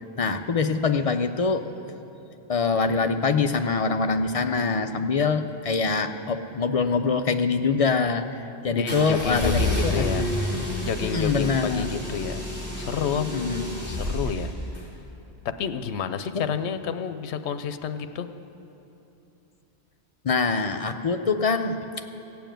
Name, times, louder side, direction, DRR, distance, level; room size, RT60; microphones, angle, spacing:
voice 1, 0.0-1.7 2.5-10.3 11.0-11.9 13.1-13.7 20.2-21.8, left 4 dB, 50° left, 8 dB, 0.4 m, -24 dB
voice 2, 8.7-10.3 10.8-12.4 12.7-13.4 13.9-14.5 15.6-18.3, left 7 dB, 80° left, 10 dB, 0.9 m, -30 dB
sound 1, 8.9-14.8, left 1 dB, 10° right, 3.5 m, -29 dB
16.5 x 7.1 x 9.0 m, 2.9 s
omnidirectional pair, 1.1 m